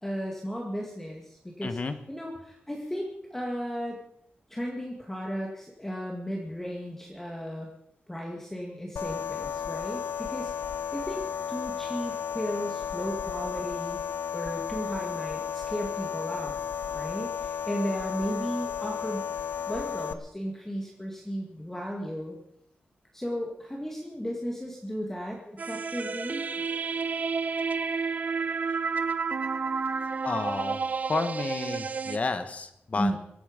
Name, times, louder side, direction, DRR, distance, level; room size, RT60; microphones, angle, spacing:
voice 1, 0.0-1.8 2.1-4.0 4.5-7.7 8.1-11.2 11.5-14.0 14.3-16.6 16.9-19.2 19.7-22.4 23.1-26.4 33.0-33.2, equal, 10° left, -1 dB, 2.0 m, -35 dB
voice 2, 1.6-2.0 30.2-30.8 31.1-33.2, left 3 dB, 40° left, 9 dB, 1.3 m, -31 dB
sound 1, 9.0-20.1, left 8 dB, 80° left, 0.8 m, -33 dB
sound 2, 25.6-32.2, right 5 dB, 45° right, 0.7 m, -30 dB
23.5 x 9.1 x 5.2 m, 0.78 s
wide cardioid pair, 145°, 4 cm